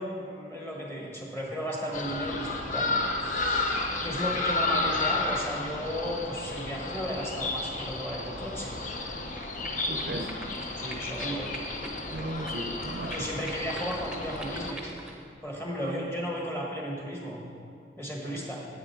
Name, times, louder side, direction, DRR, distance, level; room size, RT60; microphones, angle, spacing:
voice 1, 0.0-8.8 10.8-11.5 13.1-14.9 15.4-17.4 18.0-18.7, equal, 15° left, -2 dB, 1.4 m, -35 dB
sound 1, 1.9-14.7, left 2 dB, 45° left, 0.7 m, -32 dB
sound 2, 9.0-15.2, right 1 dB, 5° right, 0.8 m, -44 dB
voice 2, 9.9-10.4 12.1-13.3 15.8-15.9 18.2-18.4, right 1 dB, 55° right, 5 dB, 0.6 m, -36 dB
10.0 x 8.2 x 4.6 m, 2.4 s
head